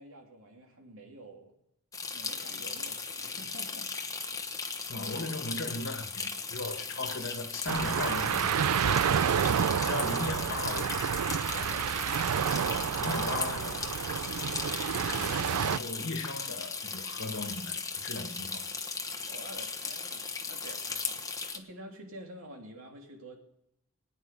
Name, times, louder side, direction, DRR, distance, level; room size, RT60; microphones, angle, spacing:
voice 1, 0.0-1.5 2.1-3.9 11.5-13.2 13.6-13.9 19.3-23.4, right 1 dB, 65° right, 3.0 m, -48 dB
sound 1, 1.9-21.6, left 4 dB, 15° left, 1.1 m, -37 dB
voice 2, 4.9-8.5 8.8-9.4 9.8-11.0 13.0-13.8 14.4-14.5 15.0-17.7 18.0-18.6, left 2 dB, 60° left, 1.7 m, -37 dB
sound 2, 7.7-15.8, right 8 dB, 85° right, 0.4 m, -29 dB
19.0 x 9.7 x 5.3 m
head